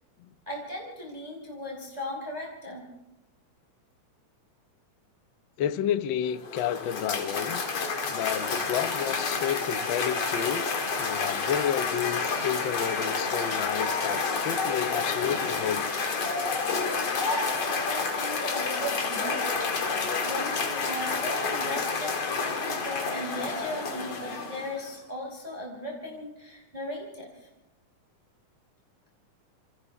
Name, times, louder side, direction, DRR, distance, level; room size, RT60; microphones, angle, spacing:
voice 1, 0.5-2.9 17.3-19.7 20.2-27.3, left 1 dB, 15° right, -2 dB, 4.4 m, -37 dB
voice 2, 5.6-7.6 8.1-10.7 11.0-15.8, left 9 dB, 85° left, 10 dB, 1.0 m, -30 dB
Cheering / Applause, 6.3-24.9, left 4 dB, 55° left, 3.2 m, -29 dB
28.5 x 27.5 x 3.6 m, 0.92 s
omnidirectional pair, 3.5 m